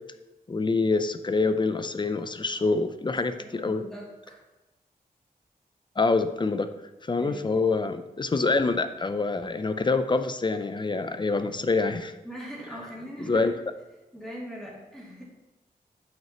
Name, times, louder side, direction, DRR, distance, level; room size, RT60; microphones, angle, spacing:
voice 1, 0.5-3.8 6.0-6.7 7.1-12.1 13.3-13.5, left 3 dB, 30° left, 10 dB, 0.5 m, -26 dB
voice 2, 3.1-4.4 7.2-7.6 12.2-13.5 14.1-15.2, equal, 5° left, -6 dB, 2.6 m, -41 dB
9.0 x 5.9 x 2.9 m, 1.1 s
wide cardioid pair, 100°, 15 cm